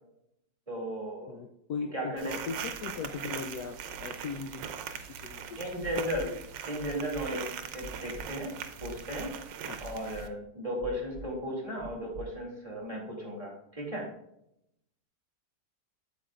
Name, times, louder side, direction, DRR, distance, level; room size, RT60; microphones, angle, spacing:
voice 1, 0.7-1.4 1.9-2.4 5.6-6.4 6.6-7.5 7.7-8.5 8.8-9.3 9.8-14.1, equal, 20° right, -3 dB, 2.4 m, -35 dB
voice 2, 1.3-5.7 9.7-9.9, left 5 dB, 70° left, 5 dB, 1.0 m, -39 dB
sound 1, 2.2-10.3, right 8 dB, 90° right, 1.4 m, -40 dB
sound 2, 5.8-6.2 6.8-7.2 7.8-8.2 8.8-9.2 9.8-10.2 10.8-11.2 11.8-12.2 12.8-12.9, right 4 dB, 50° right, 1.2 m, -44 dB
8.2 x 8.2 x 2.4 m, 0.78 s
omnidirectional pair, 1.9 m